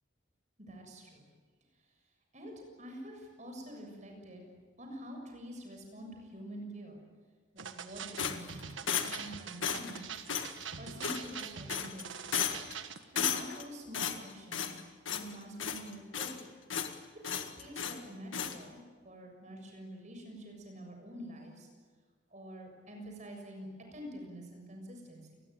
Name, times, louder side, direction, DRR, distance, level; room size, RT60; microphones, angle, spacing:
voice 1, 0.6-1.2 2.3-4.4 4.8-7.0 7.5-10.2 10.8-12.5 13.1-14.8 15.1-16.4 17.3-21.7 22.3-25.4, equal, 40° right, 3 dB, 7.0 m, -47 dB
sound 1, 7.6-13.0, right 7 dB, 80° right, 1.5 m, -44 dB
sound 2, 8.2-9.3 9.6-10.0 10.3-10.5 11.0-11.4 11.7-12.0 12.3-12.7 13.1-13.6 13.9-14.8 15.0-15.3 15.6-16.4 16.7-16.9 17.2-18.0 18.3-18.6, left 8 dB, 85° left, 1.9 m, -34 dB
28.5 x 20.5 x 9.2 m, 1.5 s
head